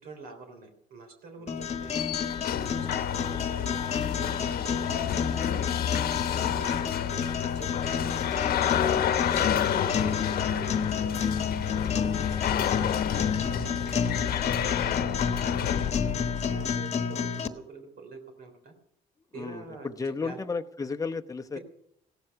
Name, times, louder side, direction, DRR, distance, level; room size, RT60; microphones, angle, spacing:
voice 1, 0.0-2.0 2.7-3.8 4.2-4.9 6.2-8.9 9.5-11.3 11.6-12.7 13.4-14.8 15.4-18.7 19.3-19.9 20.2-20.4, right 4 dB, 65° right, 5 dB, 3.4 m, -46 dB
sound 1, 1.5-17.5, left 6 dB, 40° left, 1.3 m, -30 dB
sound 2, 1.6-16.8, left 10 dB, 65° left, 1.2 m, -30 dB
voice 2, 19.3-21.6, left 4 dB, 20° left, 7 dB, 0.9 m, -34 dB
16.5 x 12.5 x 5.9 m, 0.73 s
cardioid pair, 110°, 17 cm